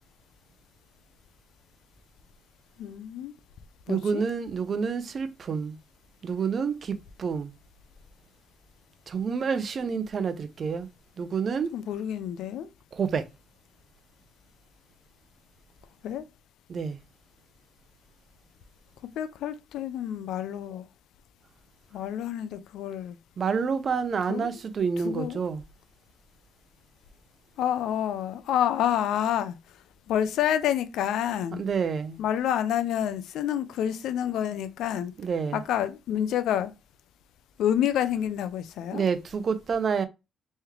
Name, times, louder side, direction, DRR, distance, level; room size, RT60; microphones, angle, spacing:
voice 1, 2.8-3.3 3.9-4.2 11.7-12.7 16.0-16.2 19.2-20.8 21.9-23.2 24.3-24.5 25.0-25.4 27.6-29.6 30.1-31.6 32.2-35.1 35.5-36.7 37.6-39.0, left 10 dB, 85° left, 0.4 m, -28 dB
voice 2, 3.9-5.8 6.2-7.5 9.1-10.9 11.2-11.7 12.9-13.3 16.7-17.0 23.4-25.6 31.5-32.2 35.2-35.6 38.9-40.1, right 6 dB, 50° right, 0.6 m, -28 dB
3.5 x 3.2 x 3.1 m
cardioid pair, 90°, 0 cm